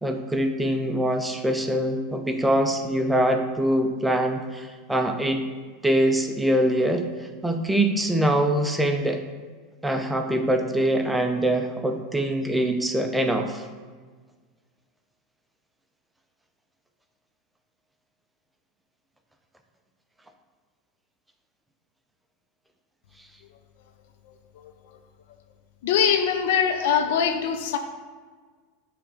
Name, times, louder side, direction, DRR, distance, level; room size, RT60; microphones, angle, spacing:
voice 1, 0.0-5.4 5.8-7.0 7.4-9.2 9.8-13.7, right 1 dB, 5° right, 5 dB, 0.6 m, -23 dB
voice 2, 25.8-27.8, left 7 dB, 70° left, 7 dB, 0.6 m, -22 dB
7.2 x 3.5 x 4.0 m, 1.5 s
hypercardioid pair, 105°, 0 cm